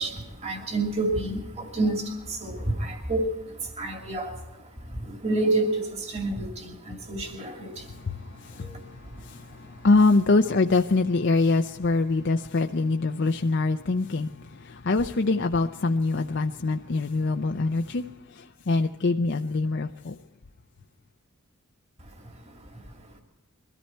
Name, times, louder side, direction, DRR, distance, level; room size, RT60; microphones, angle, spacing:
voice 1, 0.0-9.9 22.0-23.2, right 2 dB, 30° right, 3 dB, 2.5 m, -30 dB
voice 2, 9.8-14.3 14.9-18.0 18.7-20.1, left 3 dB, 50° left, 5 dB, 0.5 m, -23 dB
22.5 x 13.5 x 4.5 m, 1.1 s
head